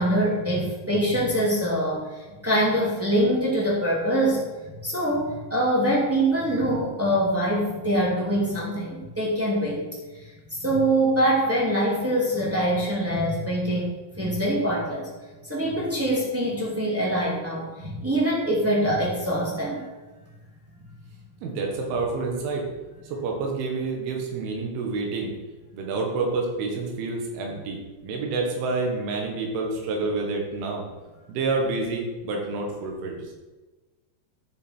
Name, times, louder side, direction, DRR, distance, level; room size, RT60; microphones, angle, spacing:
voice 1, 0.0-9.9 10.1-15.1 15.4-19.9, right 1 dB, 5° right, -6 dB, 1.5 m, -24 dB
voice 2, 21.4-22.7 23.0-25.3 25.7-27.8 28.0-30.9 31.3-33.3, right 3 dB, 90° right, 0 dB, 4.1 m, -28 dB
12.0 x 7.4 x 4.6 m, 1.2 s
omnidirectional pair, 5.3 m